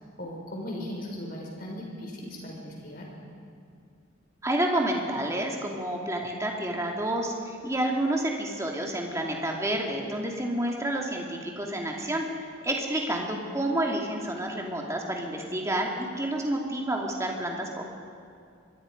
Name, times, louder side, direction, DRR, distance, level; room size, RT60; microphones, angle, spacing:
voice 1, 0.2-3.1, left 1 dB, 45° left, -1 dB, 5.4 m, -38 dB
voice 2, 4.4-17.9, right 1 dB, 15° right, 0 dB, 2.5 m, -29 dB
26.0 x 21.5 x 5.3 m, 2.4 s
head